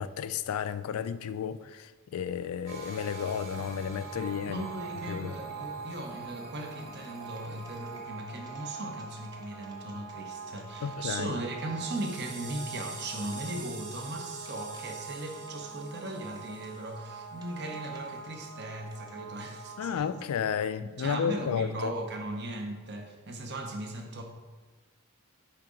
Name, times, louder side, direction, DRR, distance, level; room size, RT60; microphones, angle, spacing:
voice 1, 0.0-4.7 5.1-5.3 10.8-11.3 19.8-21.9, left 7 dB, 80° left, 0.3 m, -32 dB
sound 1, 2.7-20.1, right 4 dB, 90° right, 1.9 m, -43 dB
voice 2, 4.5-20.1 20.8-24.2, right 2 dB, 50° right, 0.8 m, -38 dB
sound 2, 6.7-11.8 12.2-12.8 13.1-14.8 15.1-19.2 19.8-20.0, right 2 dB, 20° right, 0.7 m, -59 dB
5.8 x 3.8 x 5.0 m
head